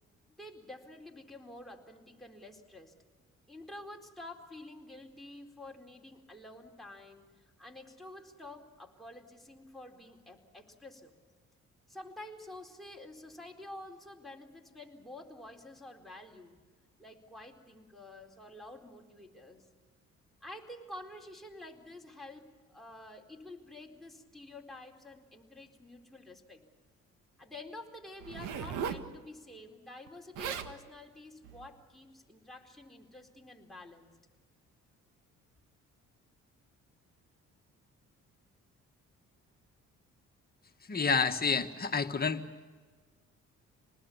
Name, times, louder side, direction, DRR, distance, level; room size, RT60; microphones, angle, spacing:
voice 1, 0.4-2.9 3.5-11.1 11.9-16.6 17.0-19.7 20.4-26.6 27.4-34.1, left 1 dB, ahead, 4 dB, 4.2 m, -49 dB
Zipper (clothing), 28.2-29.1 30.1-30.2 30.4-30.7 31.4-31.7, right 7 dB, 90° right, 1.7 m, -37 dB
voice 2, 40.9-42.4, left 5 dB, 30° left, 6 dB, 1.8 m, -29 dB
28.0 x 20.0 x 7.2 m, 1.5 s
cardioid pair, 90°, 30 cm